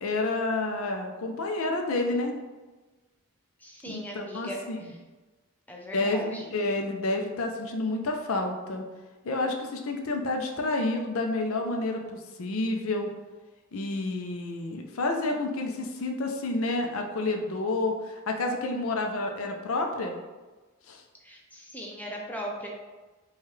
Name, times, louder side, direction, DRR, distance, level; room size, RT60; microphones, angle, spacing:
voice 1, 0.0-2.4 3.9-4.8 5.9-8.8 9.2-13.1 13.7-20.1 20.9-21.0, left 2 dB, 70° left, 3 dB, 0.5 m, -29 dB
voice 2, 3.6-5.0 5.7-6.5 21.2-22.7, equal, 10° left, -1 dB, 0.6 m, -39 dB
4.5 x 2.4 x 3.1 m, 1.2 s
head